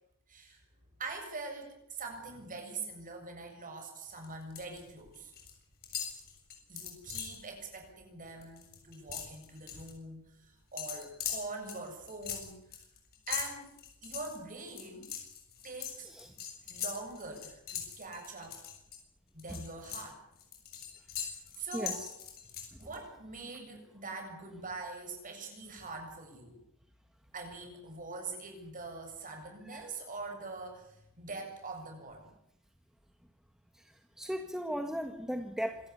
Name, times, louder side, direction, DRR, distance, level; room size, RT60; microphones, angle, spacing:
voice 1, 0.3-0.6 1.0-5.3 6.7-12.6 13.3-13.7 14.0-15.1 15.6-16.1 16.7-18.7 19.3-20.2 21.2-22.1 22.8-26.6 27.3-32.3, right 3 dB, 40° right, 3 dB, 7.5 m, -43 dB
sound 1, 4.1-4.8 5.1-5.5 5.8-7.4 7.8-8.0 8.3-9.9 10.8-19.0 19.4-23.0, left 8 dB, 45° left, 7.1 m, -41 dB
voice 2, 21.7-22.1 29.7-29.8 34.2-35.8, equal, ahead, 5 dB, 1.7 m, -36 dB
27.0 x 13.5 x 9.9 m, 0.77 s
head